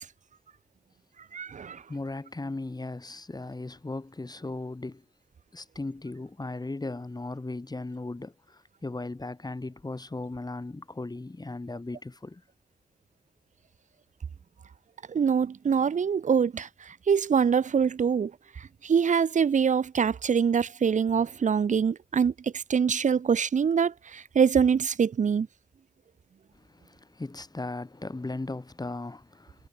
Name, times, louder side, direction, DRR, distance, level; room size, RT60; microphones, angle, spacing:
voice 1, 1.3-1.8 15.1-18.3 18.6-25.5, right 6 dB, 70° right, 0.8 m, -24 dB
voice 2, 1.9-5.0 5.5-12.4 26.5-29.7, left 2 dB, 30° left, 3.0 m, -37 dB
cardioid pair, 55°, 13 cm